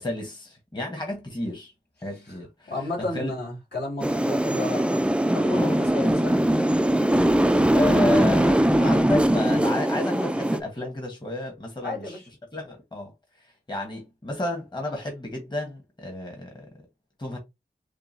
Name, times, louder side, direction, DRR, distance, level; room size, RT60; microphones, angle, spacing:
voice 1, 0.0-1.7 2.0-2.7 3.1-3.3 5.5-5.8 7.2-12.2 12.5-13.1 13.7-16.7 17.2-17.4, left 1 dB, 25° left, 1.4 m, -31 dB
voice 2, 2.7-5.0 5.3-6.4 11.8-12.3, left 2 dB, 70° left, 2.7 m, -32 dB
sound 1, 4.0-10.6, right 1 dB, 5° right, 0.4 m, -21 dB
6.6 x 2.3 x 2.7 m
wide cardioid pair, 65°, 18 cm